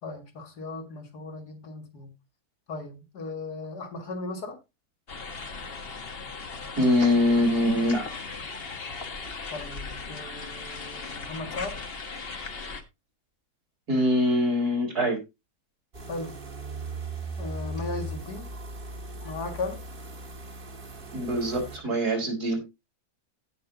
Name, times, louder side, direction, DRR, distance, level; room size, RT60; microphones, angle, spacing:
voice 1, 0.0-2.1 2.7-4.6 9.5-11.8 16.1-16.4 17.4-18.5 19.2-19.8, left 2 dB, 90° left, 2.5 m, -37 dB
sound 1, 5.1-12.8, left 4 dB, 40° left, 1.3 m, -38 dB
voice 2, 6.8-8.0 13.9-15.2 21.1-22.6, left 1 dB, 75° right, 4.4 m, -23 dB
sound 2, 15.9-21.8, right 1 dB, 35° right, 1.7 m, -38 dB
16.5 x 6.0 x 2.7 m
omnidirectional pair, 1.6 m